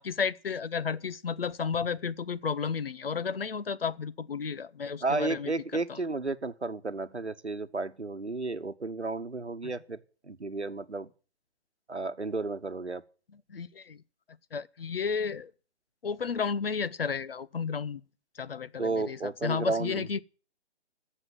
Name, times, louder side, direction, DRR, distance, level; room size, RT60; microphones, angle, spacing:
voice 1, 0.0-6.0 9.6-9.7 13.5-14.0 14.5-15.5 16.0-18.0 18.4-20.2, left 6 dB, 60° left, 0.8 m, -32 dB
voice 2, 5.0-10.0 10.2-11.1 11.9-13.0 18.8-20.1, right 3 dB, 90° right, 1.0 m, -32 dB
15.0 x 6.6 x 7.5 m
figure-of-eight pair, 135°, 33 cm